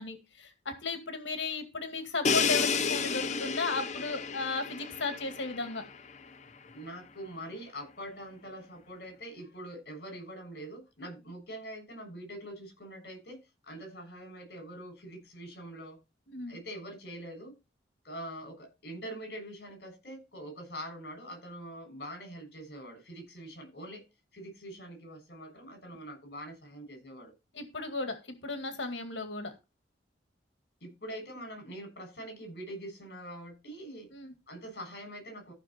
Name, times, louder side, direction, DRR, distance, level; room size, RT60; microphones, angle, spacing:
voice 1, 0.0-5.8 16.3-16.6 27.5-29.5 34.1-34.3, left 3 dB, 80° left, 7 dB, 2.2 m, -35 dB
Crash cymbal, 2.2-6.1, left 5 dB, 40° left, 0.8 m, -31 dB
voice 2, 6.7-13.4 13.7-16.0 16.5-17.5 18.0-24.0 24.3-27.3 30.8-34.1 34.5-35.5, equal, 60° left, 5 dB, 6.9 m, -44 dB
14.5 x 6.1 x 4.3 m, 0.26 s
head